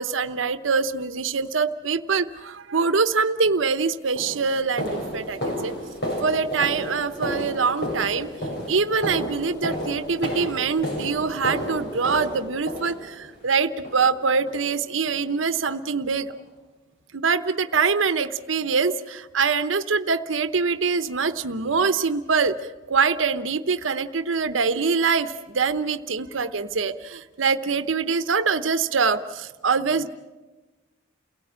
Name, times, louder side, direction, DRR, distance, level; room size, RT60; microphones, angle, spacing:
voice 1, 0.0-5.7 6.2-8.3 8.7-16.3 17.1-22.6 22.9-30.1, right 5 dB, 85° right, 11 dB, 0.9 m, -24 dB
sound 1, 3.5-3.6 4.2-13.4 13.8-14.2 14.5-14.7 15.1-15.2 15.7-15.8 16.3-16.4, equal, 55° left, 7.5 m, -32 dB
29.5 x 17.5 x 8.7 m, 1.2 s
head